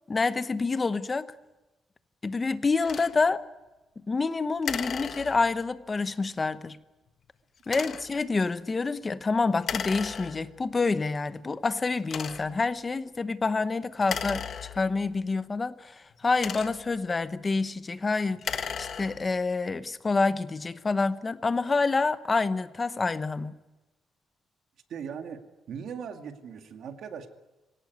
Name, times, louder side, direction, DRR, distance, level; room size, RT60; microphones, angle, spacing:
voice 1, 0.1-1.3 2.2-3.4 4.1-6.8 7.7-14.5 14.7-23.5, left 4 dB, 20° left, 12 dB, 0.9 m, -27 dB
sound 1, 2.8-3.1 4.6-5.7 7.6-8.2 9.6-10.6 11.3-11.4 12.0-12.7 14.0-15.1 16.1-17.0 18.3-19.4, left 7 dB, 45° left, 1.4 m, -35 dB
voice 2, 24.9-25.4 25.7-27.3, right 7 dB, 55° right, 5 dB, 2.2 m, -39 dB
23.5 x 18.0 x 9.4 m, 1.1 s
cardioid pair, 155°, 0 cm